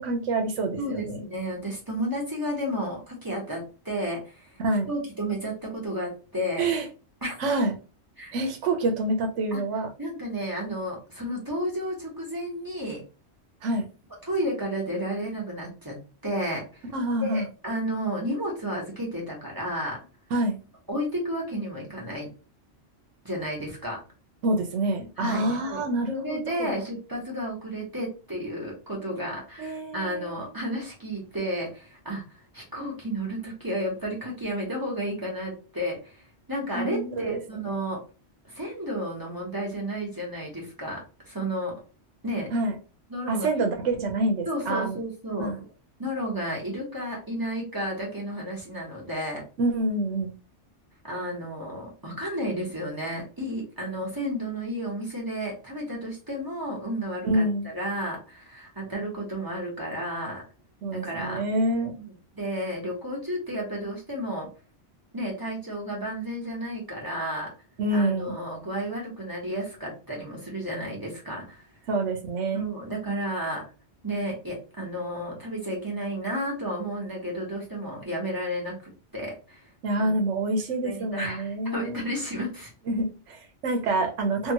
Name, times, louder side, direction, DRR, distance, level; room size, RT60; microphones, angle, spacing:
voice 1, 0.0-1.2 4.6-4.9 6.6-6.9 7.4-7.7 8.3-9.9 13.6-13.8 16.9-17.5 20.3-20.6 24.4-26.7 29.6-30.4 36.7-37.4 42.5-42.8 43.3-45.0 45.4-45.6 49.6-50.3 57.2-57.7 60.8-61.9 67.8-68.3 71.9-72.6 79.8-82.0 82.9-84.5, right 2 dB, 85° right, 4 dB, 1.0 m, -27 dB
voice 2, 0.8-4.5 4.9-6.7 7.2-7.3 8.2-8.4 9.5-9.6 10.0-13.0 14.2-16.6 17.2-20.0 20.9-22.3 23.2-24.0 25.2-25.8 26.1-32.2 32.5-36.1 36.5-38.0 38.4-41.8 42.2-42.5 43.1-43.5 44.4-45.5 46.0-49.4 51.0-60.4 60.9-61.4 62.0-64.5 65.1-67.5 67.9-71.6 72.5-73.6 74.0-78.8 79.1-79.6 80.0-80.1 80.8-82.7, equal, 20° right, -3 dB, 1.1 m, -32 dB
2.8 x 2.4 x 2.8 m, 0.34 s
omnidirectional pair, 1.2 m